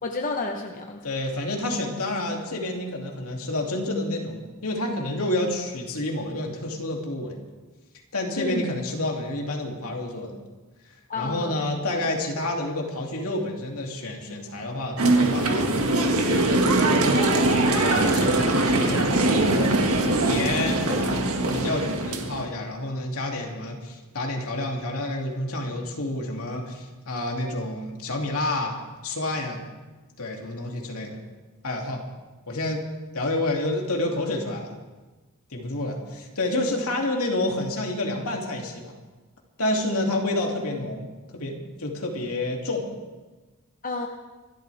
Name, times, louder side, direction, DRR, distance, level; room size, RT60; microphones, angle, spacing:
voice 1, 0.0-1.0 8.4-8.7 11.1-11.6 43.8-44.1, left 3 dB, 40° left, 3 dB, 0.9 m, -30 dB
voice 2, 1.0-7.4 8.1-10.4 11.1-16.6 17.7-19.7 20.3-28.8 29.0-29.6 30.2-31.2 31.6-32.0 32.5-32.8 33.1-34.7 35.5-38.9 39.6-41.1 41.3-42.9, left 2 dB, 70° left, 0 dB, 2.7 m, -29 dB
sound 1, 15.0-22.4, right 2 dB, 70° right, 1.8 m, -22 dB
25.5 x 12.5 x 3.5 m, 1.2 s
head